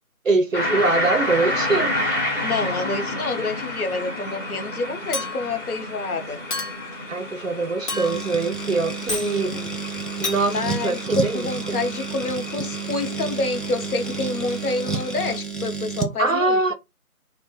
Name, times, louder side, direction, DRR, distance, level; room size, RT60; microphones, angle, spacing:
voice 1, 0.2-1.9 7.1-9.6 10.2-10.5 10.8-11.8 16.2-16.7, right 3 dB, 60° right, 0.5 m, -23 dB
sound 1, 0.5-15.4, left 1 dB, 55° left, 1.1 m, -30 dB
voice 2, 2.4-6.4 9.2-9.7 10.5-16.7, left 3 dB, 70° left, 0.6 m, -28 dB
Chink clink, 5.1-5.6 6.5-7.0 7.9-8.4 9.1-9.3 10.2-10.4, left 3 dB, 90° left, 0.9 m, -30 dB
sound 2, 7.9-16.2, right 5 dB, ahead, 0.3 m, -30 dB
2.1 x 2.1 x 2.9 m
figure-of-eight pair, 170°, 45 cm